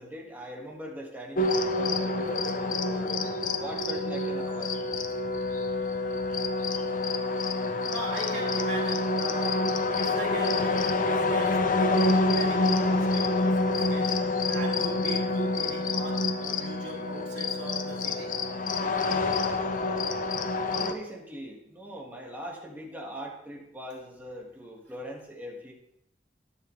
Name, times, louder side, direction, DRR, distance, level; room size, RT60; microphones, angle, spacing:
voice 1, 0.0-3.2 3.6-4.7 20.7-25.7, equal, 10° right, -1 dB, 1.8 m, -41 dB
sound 1, 1.4-20.9, left 2 dB, 45° left, 0.7 m, -27 dB
voice 2, 7.9-18.4, right 2 dB, 80° right, -4 dB, 3.2 m, -40 dB
11.0 x 9.2 x 3.2 m, 0.80 s
head